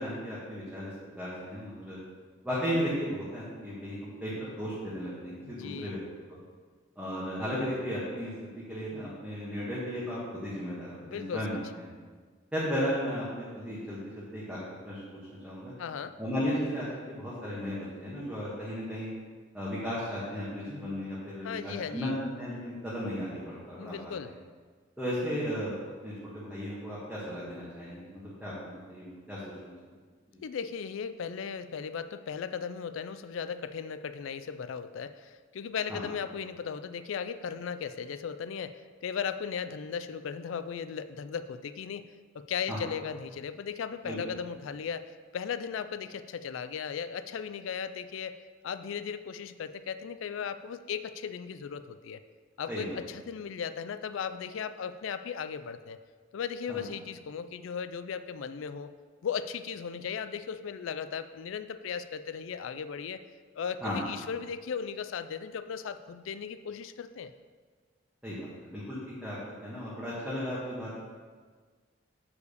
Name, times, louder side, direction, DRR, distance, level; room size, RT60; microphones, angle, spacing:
voice 1, 0.0-2.0 2.4-6.0 6.9-8.3 8.7-11.8 12.5-14.6 14.8-15.7 16.2-19.1 19.5-24.4 25.0-25.7 26.0-29.7 30.3-30.4 35.9-36.0 42.7-42.8 44.0-44.2 52.7-53.0 56.7-56.8 63.8-64.0 68.2-70.9, equal, 5° right, -9 dB, 1.5 m, -35 dB
voice 2, 5.4-6.0 11.0-11.5 15.8-16.2 21.4-22.2 23.8-24.3 30.4-42.1 42.3-45.0 45.3-48.4 48.6-52.2 52.6-56.0 56.3-58.9 59.2-63.2 63.5-67.3, left 7 dB, 80° left, 12 dB, 0.4 m, -37 dB
6.9 x 4.7 x 6.7 m, 1.5 s
head